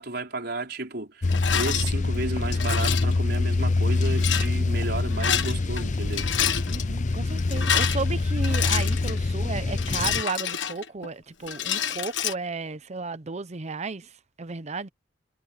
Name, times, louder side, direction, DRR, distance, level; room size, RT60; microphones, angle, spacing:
voice 1, 0.0-6.3, right 2 dB, 60° right, 4.8 m, -33 dB
sound 1, 1.2-10.2, left 3 dB, 40° left, 0.6 m, -25 dB
Rattle, 1.3-1.9 2.5-3.2 4.0-4.5 5.1-5.8 6.1-6.8 7.4-9.2 9.8-11.1 11.5-12.3, left 8 dB, 80° left, 1.4 m, -28 dB
voice 2, 6.7-14.9, right 4 dB, 40° right, 0.8 m, -34 dB
head